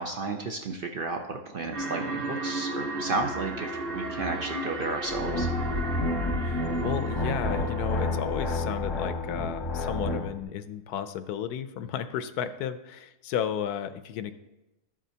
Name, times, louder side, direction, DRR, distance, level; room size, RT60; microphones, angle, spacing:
voice 1, 0.0-5.5, right 3 dB, 60° right, 3 dB, 0.5 m, -33 dB
sound 1, 1.7-8.9, right 2 dB, 40° right, 1.4 m, -35 dB
sound 2, 5.1-10.3, left 2 dB, 25° left, 0.7 m, -29 dB
voice 2, 6.4-14.3, left 9 dB, 80° left, 11 dB, 1.1 m, -33 dB
13.0 x 7.5 x 2.8 m, 0.97 s
omnidirectional pair, 1.6 m